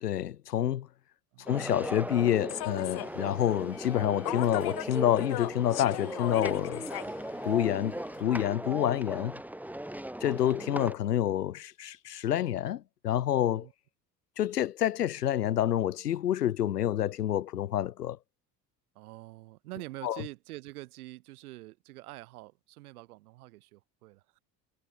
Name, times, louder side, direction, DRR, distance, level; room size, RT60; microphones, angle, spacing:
voice 1, 0.0-0.9 1.5-6.9 7.4-9.4 10.2-13.7 14.4-18.2 20.0-20.2, left 11 dB, 85° left, 0.6 m, -28 dB
sound 1, 1.5-10.9, right 1 dB, 5° right, 2.7 m, -38 dB
Human voice / Subway metro underground, 2.5-8.2, left 17 dB, 50° left, 4.1 m, -39 dB
voice 2, 18.9-24.4, right 19 dB, 65° right, 6.9 m, -46 dB
figure-of-eight pair, 60°, 46 cm